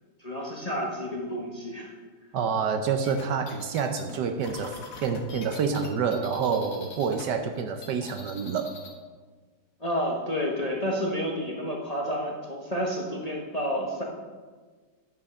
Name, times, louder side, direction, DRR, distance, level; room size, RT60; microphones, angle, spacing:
voice 1, 0.2-1.9 9.8-14.0, equal, 25° left, -1 dB, 0.9 m, -30 dB
voice 2, 2.3-8.7, right 6 dB, 70° right, 7 dB, 1.2 m, -28 dB
sound 1, 3.0-7.2 7.5-9.0, left 4 dB, 50° left, 1.4 m, -43 dB
9.7 x 6.1 x 5.5 m, 1.4 s
omnidirectional pair, 2.1 m